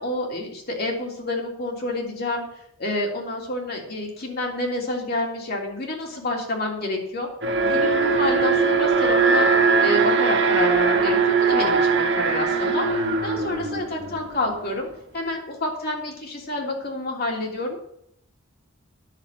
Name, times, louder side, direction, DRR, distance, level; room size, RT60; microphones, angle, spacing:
voice 1, 0.0-2.4 2.8-7.3 7.6-9.5 9.8-12.9 13.2-14.9 15.1-17.8, left 1 dB, 50° left, 0 dB, 3.2 m, -28 dB
Alarm, 7.4-14.5, right 4 dB, 65° right, 1.7 m, -20 dB
10.5 x 7.0 x 8.8 m, 0.71 s
head